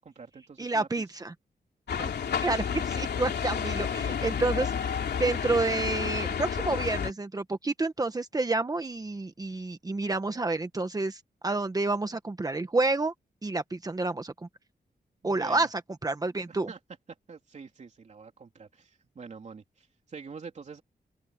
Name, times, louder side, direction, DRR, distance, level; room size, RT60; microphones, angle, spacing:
voice 1, 0.0-1.1 1.9-2.1 15.2-15.7 16.4-16.8 17.3-20.8, right 5 dB, 45° right, 3.3 m, -46 dB
voice 2, 0.6-1.3 2.4-4.7 5.2-13.1 13.4-14.5 15.2-16.7, right 3 dB, 20° right, 1.2 m, -29 dB
sound 1, 1.9-7.1, left 7 dB, 90° left, 3.0 m, -30 dB
open air
wide cardioid pair, 175°, 17 cm